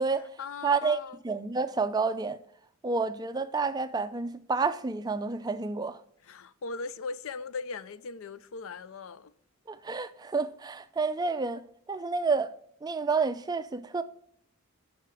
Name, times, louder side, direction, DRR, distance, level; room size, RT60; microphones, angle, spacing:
voice 1, 0.1-1.2 6.2-9.3, left 4 dB, 70° left, 0.5 m, -39 dB
voice 2, 0.6-1.0 1.2-2.4 2.8-6.0 9.7-11.6 11.9-12.5 12.8-14.0, right 4 dB, 20° right, 0.3 m, -29 dB
9.4 x 5.8 x 4.8 m
head